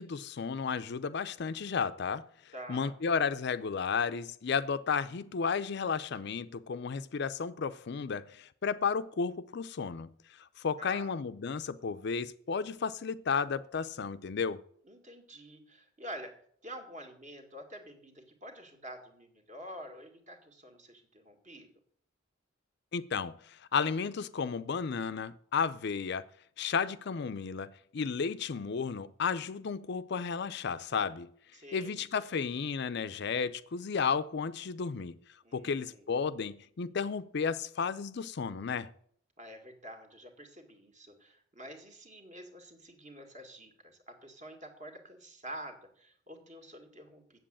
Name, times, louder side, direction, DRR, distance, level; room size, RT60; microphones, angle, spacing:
voice 1, 0.0-10.1 10.6-14.6 22.9-26.3 26.6-31.3 31.7-35.2 35.5-38.9, left 5 dB, 55° left, 0.5 m, -33 dB
voice 2, 2.5-2.9 10.8-11.1 14.8-16.3 16.6-21.7 31.5-32.1 35.4-36.0 39.4-47.4, right 1 dB, 40° right, 2.0 m, -48 dB
7.8 x 7.7 x 8.6 m
head